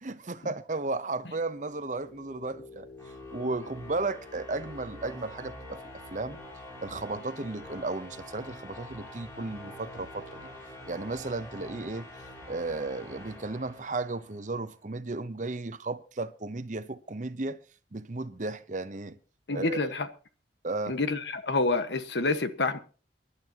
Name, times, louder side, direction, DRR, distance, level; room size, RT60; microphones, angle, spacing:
voice 1, 0.0-2.9 3.3-5.8 6.1-6.4 6.8-10.4 10.9-12.1 12.5-17.6 17.9-19.2 19.5-19.9 20.6-21.0, right 3 dB, 45° right, 0.8 m, -34 dB
sound 1, 1.4-14.5, left 1 dB, 15° left, 6.6 m, -46 dB
voice 2, 19.5-20.1 20.9-22.8, left 3 dB, 75° left, 1.4 m, -28 dB
24.5 x 11.5 x 2.9 m
head